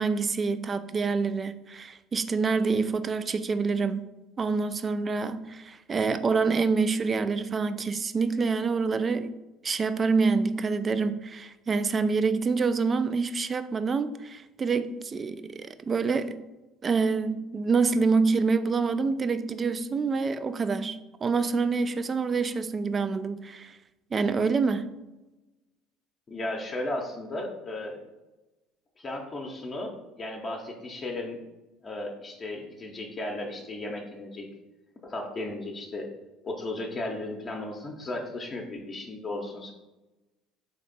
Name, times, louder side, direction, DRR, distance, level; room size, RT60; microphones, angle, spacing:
voice 1, 0.0-4.0 4.4-9.3 9.6-16.4 16.8-23.8 24.1-24.9, right 4 dB, 35° right, 12 dB, 0.3 m, -26 dB
voice 2, 26.3-28.0 29.0-31.4 31.8-34.5 35.0-36.1 36.4-39.7, left 2 dB, 35° left, 0 dB, 0.7 m, -35 dB
3.4 x 2.9 x 4.0 m, 1.0 s
hypercardioid pair, 75°, 0 cm